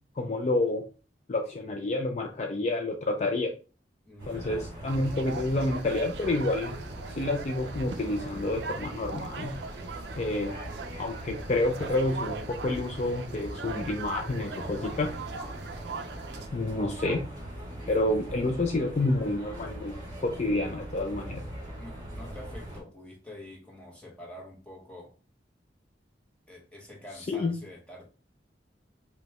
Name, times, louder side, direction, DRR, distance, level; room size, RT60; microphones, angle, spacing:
voice 1, 0.2-0.8 1.3-3.5 4.3-6.8 7.1-9.5 10.2-10.6 11.0-15.1 16.5-17.2 17.9-20.0 20.2-21.4 27.3-27.5, left 2 dB, 40° left, 3 dB, 0.4 m, -29 dB
voice 2, 4.0-4.7 18.3-18.4 21.8-25.1 26.5-28.1, left 1 dB, 5° left, -2 dB, 1.0 m, -46 dB
sound 1, 4.2-22.8, right 1 dB, 25° right, 1.9 m, -41 dB
sound 2, 4.9-16.5, right 4 dB, 70° right, 0.4 m, -41 dB
5.1 x 2.2 x 2.8 m, 0.36 s
head